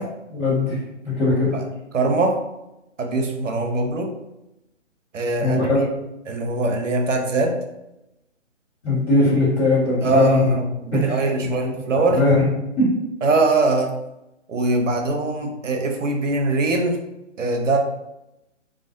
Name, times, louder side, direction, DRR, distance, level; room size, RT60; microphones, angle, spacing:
voice 1, 0.3-1.6 5.4-5.8 8.8-10.5 10.9-11.7 12.1-12.4 12.8-12.9, left 2 dB, 10° left, -12 dB, 1.1 m, -20 dB
voice 2, 1.9-2.4 3.0-4.1 5.1-5.6 6.3-7.6 10.0-12.2 13.2-14.0 14.5-17.0 17.4-17.8, right 3 dB, 90° right, 3 dB, 0.6 m, -22 dB
2.4 x 2.3 x 2.5 m, 0.90 s
figure-of-eight pair, 150°, 37 cm